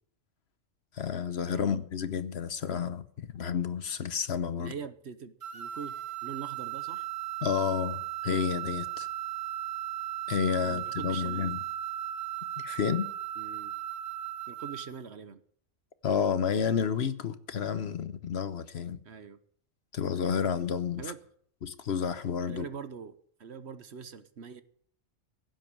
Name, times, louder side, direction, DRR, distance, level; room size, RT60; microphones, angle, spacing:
voice 1, 0.9-4.7 7.4-9.1 10.3-11.6 12.6-13.1 16.0-19.0 19.9-21.0 21.6-22.6, left 7 dB, 55° left, 1.0 m, -30 dB
voice 2, 1.5-1.8 4.6-7.1 10.6-11.5 13.4-13.7 14.5-15.4 19.0-19.4 20.6-20.7 21.0-21.2 22.5-24.6, right 6 dB, 60° right, 1.2 m, -43 dB
sound 1, 5.4-15.0, right 13 dB, 75° right, 2.3 m, -36 dB
16.5 x 7.7 x 8.8 m
omnidirectional pair, 1.3 m